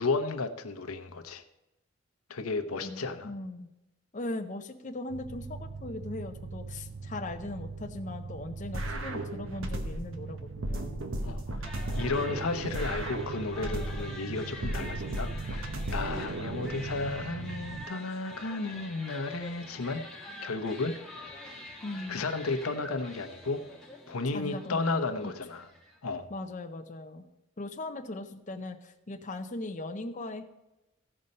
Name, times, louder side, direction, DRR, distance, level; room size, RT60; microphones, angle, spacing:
voice 1, 0.0-1.4 2.3-3.3 11.2-11.6 11.9-20.0 20.4-21.0 22.1-23.6 24.1-25.7 26.0-26.3, left 3 dB, 90° left, 8 dB, 0.9 m, -33 dB
voice 2, 2.8-3.7 4.1-11.0 21.8-22.3 24.3-25.0 25.2-25.3 26.3-27.2 27.6-30.4, left 2 dB, 35° left, 5 dB, 0.6 m, -39 dB
sound 1, 5.1-17.9, right 4 dB, 50° right, 0.3 m, -41 dB
sound 2, 8.7-10.2 10.6-14.2 14.6-16.7, right 1 dB, 65° right, 1.1 m, -35 dB
sound 3, 11.6-26.0, left 1 dB, 5° left, 1.5 m, -46 dB
15.5 x 5.5 x 5.3 m, 0.96 s
head